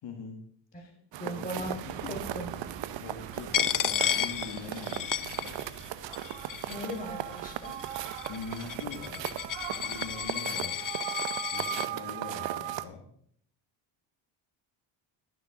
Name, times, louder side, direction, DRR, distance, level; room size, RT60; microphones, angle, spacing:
voice 1, 0.0-0.4 0.7-0.9 1.2-2.2 3.0-5.6 8.3-9.4 9.8-10.9 11.5-13.1, left 5 dB, 65° left, 3 dB, 1.8 m, -43 dB
sound 1, 1.1-12.8, right 13 dB, 65° right, 0.8 m, -37 dB
voice 2, 1.2-1.8 2.1-2.5 6.7-7.8, equal, 15° left, 0 dB, 3.8 m, -38 dB
sound 2, 1.5-10.3, right 3 dB, 40° right, 2.7 m, -51 dB
Coin (dropping), 3.5-5.9 6.1-7.0 7.7-11.9, left 10 dB, 45° left, 0.7 m, -32 dB
12.0 x 10.0 x 3.7 m, 0.64 s
supercardioid pair, 75°, 47 cm